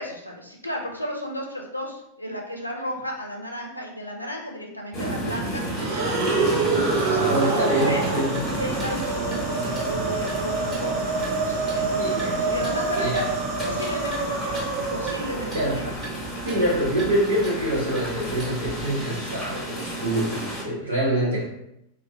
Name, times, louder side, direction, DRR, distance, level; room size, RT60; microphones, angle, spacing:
voice 1, 0.0-6.6 7.0-8.1 8.5-13.2 13.6-14.5 14.9-15.9, equal, 85° left, 0 dB, 0.5 m, -33 dB
sound 1, 4.9-20.6, right 1 dB, 25° left, 1.0 m, -32 dB
sound 2, 5.7-15.9, right 3 dB, 35° right, 0.6 m, -27 dB
voice 2, 7.2-8.4 12.0-12.4 13.0-13.3 15.5-15.8 16.4-21.4, right 1 dB, 75° right, -6 dB, 0.9 m, -25 dB
Clock, 8.3-18.8, equal, 15° right, 1.0 m, -41 dB
2.6 x 2.0 x 3.3 m, 0.81 s
figure-of-eight pair, 90°, 0 cm